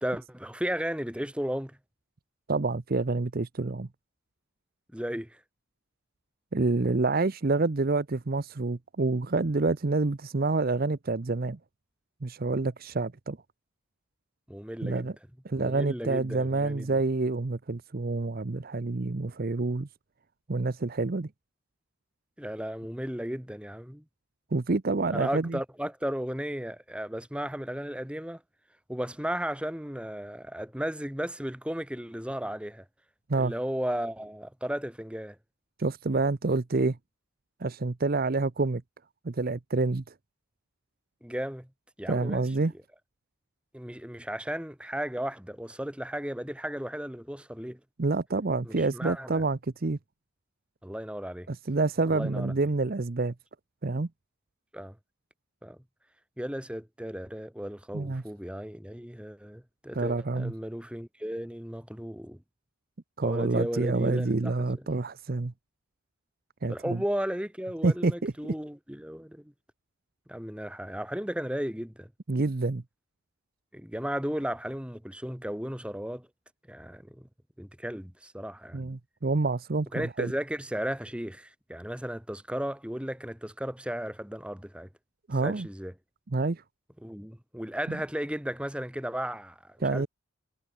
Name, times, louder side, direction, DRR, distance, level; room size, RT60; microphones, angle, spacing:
voice 1, 0.0-1.8 4.9-5.4 14.5-15.1 15.6-17.0 22.4-24.0 25.1-28.4 28.9-32.8 33.3-35.4 41.2-41.7 42.0-42.7 43.7-47.8 48.6-49.4 50.8-51.5 52.1-52.5 54.7-55.0 55.6-55.8 56.4-62.4 63.2-64.5 66.7-69.5 70.3-72.1 73.7-76.3 76.7-77.3 77.6-78.8 79.9-84.9 85.4-85.9 87.0-90.1, equal, 5° right, 1.7 m, -35 dB
voice 2, 2.5-3.9 6.5-11.6 12.2-13.4 14.8-15.1 15.4-19.9 20.5-21.3 24.5-25.6 33.3-33.5 35.8-37.0 37.6-38.8 39.2-40.0 42.1-42.7 48.0-50.0 51.5-53.3 53.8-54.1 57.9-58.2 59.9-60.5 63.2-65.5 66.6-67.0 67.8-68.3 72.3-72.8 78.7-80.3 85.3-85.7 86.3-86.6 87.9-88.0 89.8-90.1, right 3 dB, 45° right, 0.7 m, -28 dB
head